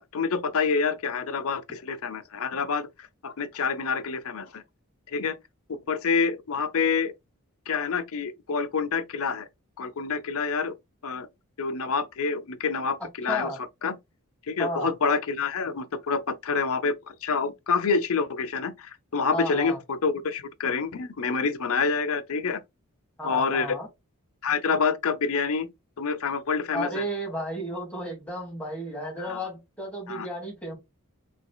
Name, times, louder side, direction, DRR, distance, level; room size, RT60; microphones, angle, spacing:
voice 1, 0.0-4.6 5.1-5.4 5.9-7.1 7.7-9.5 9.8-10.7 11.0-11.3 11.6-13.5 13.8-14.0 14.5-22.6 23.2-23.8 24.4-25.7 26.0-27.1 29.2-29.4 30.1-30.3, left 5 dB, 65° left, 0.7 m, -27 dB
voice 2, 13.3-13.6 14.6-14.9 19.3-19.8 23.2-23.9 26.7-30.8, equal, 5° left, 2.4 m, -33 dB
5.1 x 3.9 x 2.3 m
head